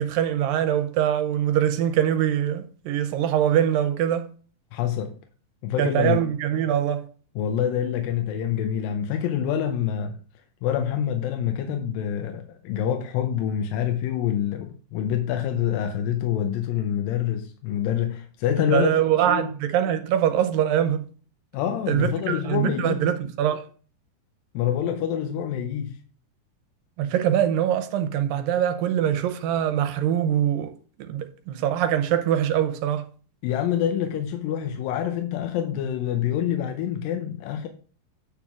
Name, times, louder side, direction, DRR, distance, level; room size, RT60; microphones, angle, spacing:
voice 1, 0.0-4.3 5.8-7.1 18.7-21.1 21.9-23.7 27.0-30.7 31.0-33.1, right 10 dB, 90° right, 2.4 m, -23 dB
voice 2, 4.7-5.1 5.6-6.3 7.4-10.2 10.6-19.0 19.3-19.5 21.5-23.0 24.5-26.0 33.4-37.7, left 9 dB, 90° left, 2.5 m, -26 dB
9.2 x 3.7 x 6.0 m
omnidirectional pair, 4.0 m